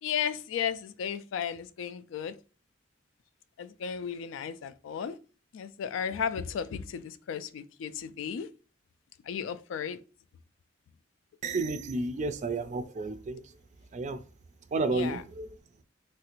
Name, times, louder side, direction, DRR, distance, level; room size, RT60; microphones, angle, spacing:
voice 1, 0.0-2.4 3.6-5.2 5.5-8.5 9.3-10.0 14.9-15.2, left 7 dB, 85° left, 0.3 m, -34 dB
voice 2, 11.4-13.4 13.9-14.2 14.7-15.5, right 3 dB, 40° right, 0.3 m, -31 dB
3.2 x 2.4 x 2.9 m
head